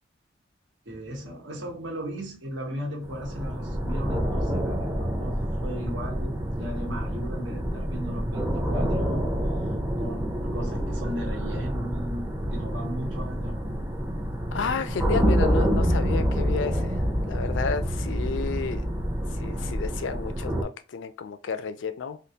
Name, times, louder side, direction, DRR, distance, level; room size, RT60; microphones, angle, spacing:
voice 1, 0.8-9.3 10.0-13.6, equal, 90° right, 1.1 m, -36 dB
sound 1, 3.0-20.6, equal, 15° right, 0.5 m, -27 dB
voice 2, 14.5-18.8 19.3-22.2, left 5 dB, 80° left, 0.4 m, -32 dB
3.5 x 2.3 x 2.8 m
head